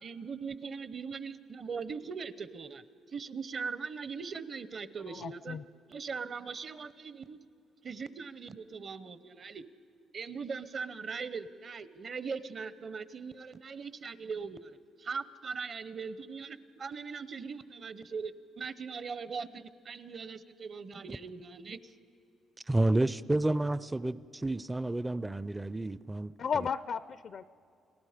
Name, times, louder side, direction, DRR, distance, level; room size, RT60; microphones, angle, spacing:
voice 1, 0.0-5.6 5.9-7.4 7.8-9.6 10.1-21.9, right 5 dB, 45° right, 14 dB, 0.8 m, -40 dB
voice 2, 5.1-5.6 26.4-27.4, left 6 dB, 55° left, 15 dB, 0.4 m, -34 dB
voice 3, 22.7-26.3, right 2 dB, 15° right, 16 dB, 0.4 m, -30 dB
29.5 x 19.5 x 5.1 m, 2.6 s
cardioid pair, 90°, 0 cm